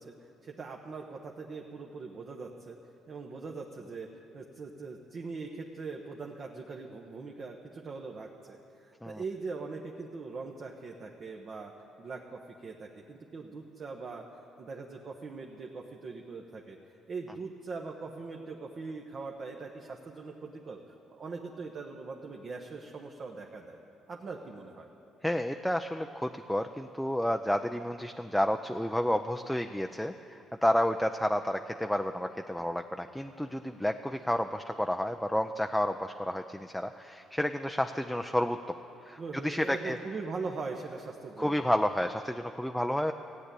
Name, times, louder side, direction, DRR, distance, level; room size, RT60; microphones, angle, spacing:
voice 1, 0.0-2.8 3.1-4.1 4.3-11.7 12.0-16.8 17.1-20.8 21.1-23.8 24.1-24.9 39.2-41.6, right 4 dB, 45° right, 1 dB, 1.0 m, -41 dB
voice 2, 25.2-38.8 39.0-40.0 41.4-43.1, left 1 dB, 5° left, 5 dB, 0.4 m, -30 dB
15.0 x 8.9 x 8.3 m, 2.9 s
cardioid pair, 90°, 0 cm